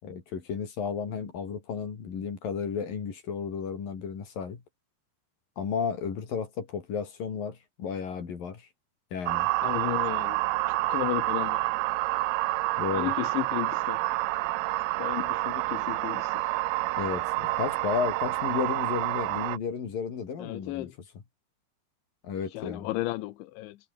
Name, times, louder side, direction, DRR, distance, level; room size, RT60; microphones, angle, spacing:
voice 1, 0.0-4.6 5.6-8.7 9.1-9.5 12.8-13.1 17.0-20.9 22.2-22.9, left 6 dB, 45° left, 5.0 m, -33 dB
sound 1, 9.3-19.6, right 20 dB, 85° right, 3.5 m, -28 dB
voice 2, 9.6-10.4 10.7-11.6 12.9-14.0 15.0-16.4 20.4-20.9 22.5-23.8, left 17 dB, 75° left, 3.2 m, -34 dB
omnidirectional pair, 5.7 m